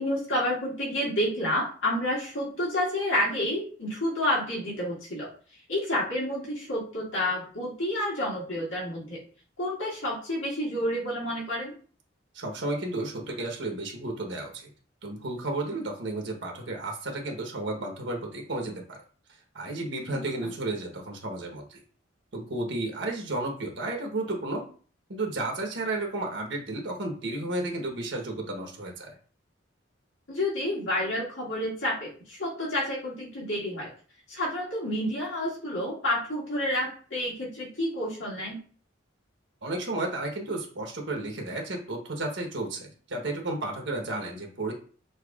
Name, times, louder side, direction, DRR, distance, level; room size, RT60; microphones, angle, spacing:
voice 1, 0.0-5.3 5.7-9.2 9.6-11.7 20.1-20.5 30.3-33.9 34.3-38.6, left 1 dB, 80° left, -5 dB, 2.1 m, -29 dB
voice 2, 12.3-14.7 15.0-19.0 19.5-21.8 22.3-24.6 25.1-29.1 39.6-44.7, right 2 dB, 65° right, 1 dB, 1.1 m, -32 dB
6.6 x 2.9 x 2.4 m, 0.42 s
head